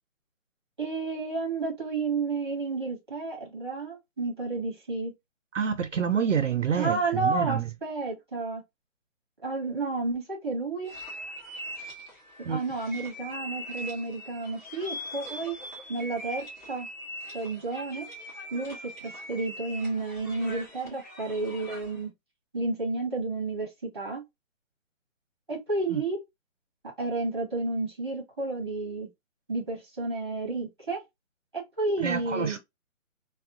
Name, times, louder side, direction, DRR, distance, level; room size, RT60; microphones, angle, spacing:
voice 1, 0.8-5.1 6.8-8.6 9.4-10.9 12.4-15.6 15.9-16.9 17.3-18.1 18.5-22.1 22.5-24.2 25.5-26.2 27.0-29.1 29.5-31.0 31.5-32.6, right 3 dB, 20° right, 0.8 m, -31 dB
voice 2, 5.5-7.7 12.5-12.6 25.9-26.0 32.0-32.6, right 7 dB, 65° right, 0.5 m, -27 dB
sound 1, 10.8-22.0, equal, 35° left, 1.6 m, -41 dB
3.5 x 2.2 x 2.5 m
hypercardioid pair, 180°, 40 cm